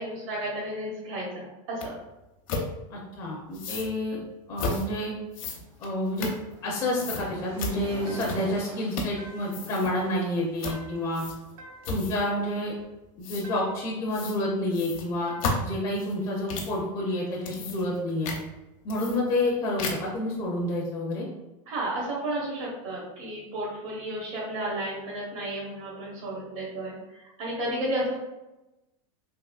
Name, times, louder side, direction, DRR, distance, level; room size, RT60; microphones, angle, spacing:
voice 1, 0.0-1.9 21.7-28.1, right 1 dB, 70° right, -5 dB, 1.1 m, -32 dB
sound 1, 1.8-1.9 2.5-2.7 3.5-3.9 4.6-4.9 5.3-6.7 7.0-7.3 7.6-7.8 8.2-8.6 8.9-9.2 9.5-9.9 10.6-10.8 11.1-11.5 11.8-12.3 13.2-13.5 14.1-14.4 14.7-16.8 17.3-18.0 18.2-18.4 18.9-19.5 19.8-20.2, left 3 dB, 70° left, 0.8 m, -33 dB
voice 2, 2.9-4.2 4.5-5.1 5.8-6.3 6.6-11.2 11.9-12.7 13.2-18.3 18.8-21.3, left 1 dB, 20° left, -4 dB, 0.4 m, -29 dB
Waves surf, 5.6-12.7, right 2 dB, 45° right, 0.7 m, -46 dB
sound 2, 8.1-8.6 9.2-9.7 10.7-11.2 11.6-12.1 13.4-14.0 15.3-15.8, right 1 dB, 90° right, 0.7 m, -48 dB
3.5 x 2.8 x 2.3 m, 1.0 s
supercardioid pair, 170°, 18 cm